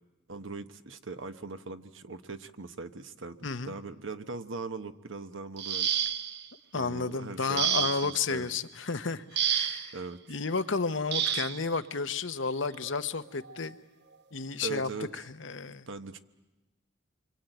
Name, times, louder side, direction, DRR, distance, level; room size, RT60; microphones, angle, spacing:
voice 1, 0.3-3.4 3.6-5.9 6.7-8.6 9.9-10.2 14.6-15.1 15.9-16.2, right 3 dB, 75° right, 10 dB, 1.1 m, -40 dB
voice 2, 3.4-3.7 6.7-9.9 10.3-13.8 14.3-15.9, left 4 dB, 70° left, 10 dB, 1.0 m, -32 dB
sound 1, 5.6-6.5 7.6-8.2 9.4-9.9 11.1-11.6 12.8-12.9 13.4-13.7, right 9 dB, 55° right, 0.9 m, -29 dB
27.0 x 24.0 x 9.1 m, 1.1 s
head